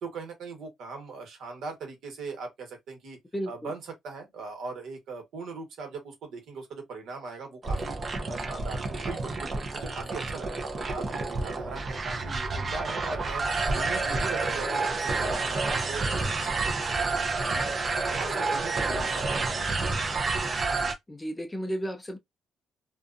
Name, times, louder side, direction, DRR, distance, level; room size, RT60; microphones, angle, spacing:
voice 1, 0.0-3.2 3.5-8.0 8.3-10.6 10.9-17.8 18.1-20.0, right 4 dB, 75° right, 1.3 m, -40 dB
voice 2, 3.3-3.7 21.1-22.2, equal, 15° left, 0.5 m, -33 dB
sound 1, 7.6-20.9, right 3 dB, 40° right, 0.7 m, -29 dB
2.5 x 2.4 x 2.5 m
cardioid pair, 90°, 0 cm